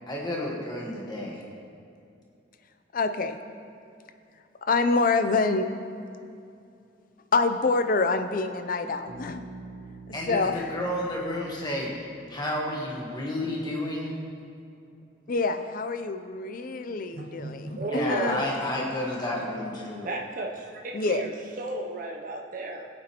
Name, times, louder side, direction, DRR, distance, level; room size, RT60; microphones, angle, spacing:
voice 1, 0.1-1.4 10.1-14.1 17.9-20.1, left 1 dB, 20° left, -2 dB, 1.4 m, -31 dB
voice 2, 2.9-3.4 4.6-5.7 7.3-9.4 10.3-10.7 15.3-18.4 20.9-21.2, left 3 dB, 45° left, 9 dB, 0.5 m, -26 dB
Bass guitar, 9.1-12.8, right 2 dB, 85° right, 1.1 m, -46 dB
voice 3, 17.1-18.5 20.0-22.9, right 2 dB, 45° right, 0 dB, 0.6 m, -34 dB
15.0 x 8.6 x 3.0 m, 2.6 s
head